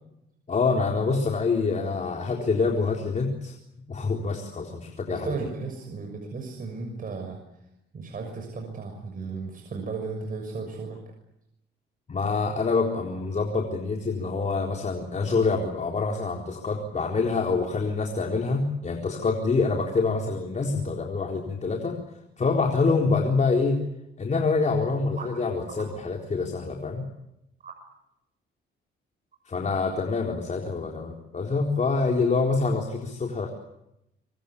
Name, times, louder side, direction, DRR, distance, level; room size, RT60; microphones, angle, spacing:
voice 1, 0.5-3.5 3.9-5.5 12.1-22.0 22.4-23.8 24.2-27.1 29.5-33.5, left 4 dB, 35° left, 1 dB, 4.1 m, -26 dB
voice 2, 5.1-7.4 7.9-11.0 25.2-25.3 25.7-25.8 27.6-27.7, right 4 dB, 45° right, 2 dB, 6.3 m, -35 dB
25.5 x 23.5 x 8.5 m, 0.85 s
cardioid pair, 90°, 20 cm